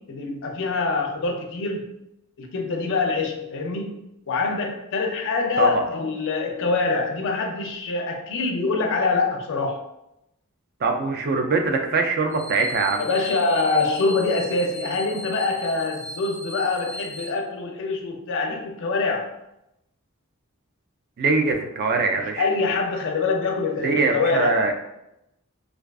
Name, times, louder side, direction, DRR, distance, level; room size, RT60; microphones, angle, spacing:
voice 1, 0.0-1.9 2.4-4.0 4.3-9.9 13.0-19.3 22.4-24.6, left 3 dB, 60° left, 3 dB, 0.4 m, -25 dB
voice 2, 10.8-13.0 21.2-22.5 23.8-24.7, right 3 dB, 50° right, 4 dB, 0.3 m, -22 dB
sound 1, 12.3-17.3, equal, 20° left, 0.7 m, -38 dB
2.4 x 2.3 x 2.3 m, 0.85 s
head